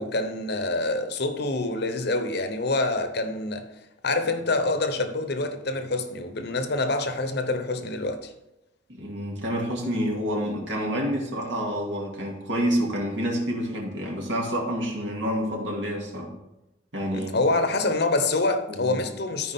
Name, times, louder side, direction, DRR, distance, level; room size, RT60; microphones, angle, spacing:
voice 1, 0.0-3.7 4.0-8.3 17.1-19.5, left 2 dB, 60° left, 0.9 m, -26 dB
voice 2, 8.9-16.3 16.9-17.5 18.7-19.0, equal, 75° right, 2.4 m, -28 dB
14.0 x 4.8 x 3.6 m
head